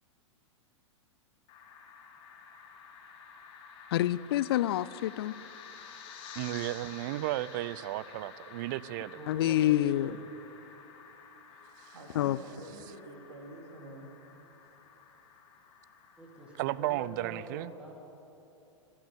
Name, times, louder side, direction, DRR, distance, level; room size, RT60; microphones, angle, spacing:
sound 1, 1.5-16.8, left 6 dB, 35° left, 1.7 m, -51 dB
voice 1, 3.9-5.3 9.3-10.1 12.2-12.4, left 13 dB, 50° left, 18 dB, 0.4 m, -27 dB
voice 2, 6.3-9.2 11.9-12.0 16.6-17.7, right 16 dB, 40° right, 19 dB, 0.4 m, -34 dB
voice 3, 9.1-10.3 16.2-17.9, equal, 5° right, -1 dB, 2.7 m, -46 dB
voice 4, 11.5-14.1 14.4-14.9 15.9-16.0, right 1 dB, 65° right, 2 dB, 2.7 m, -49 dB
18.5 x 6.2 x 8.9 m, 2.9 s
figure-of-eight pair, 105°, 16 cm